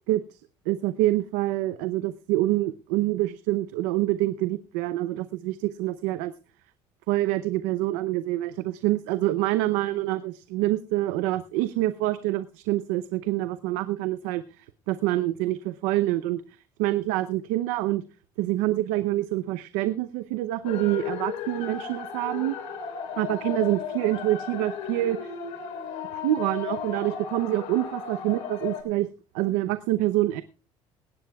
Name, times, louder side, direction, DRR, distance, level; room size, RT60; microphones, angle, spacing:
voice 1, 0.1-0.4 0.7-6.3 7.1-16.4 16.8-18.0 18.4-22.6 23.2-25.3 26.1-29.1 29.3-30.4, right 16 dB, 90° right, 12 dB, 0.7 m, -26 dB
sound 1, 20.6-28.8, left 7 dB, 80° left, 3.9 m, -35 dB
18.5 x 17.0 x 2.3 m, 0.35 s
supercardioid pair, 95°, 12 cm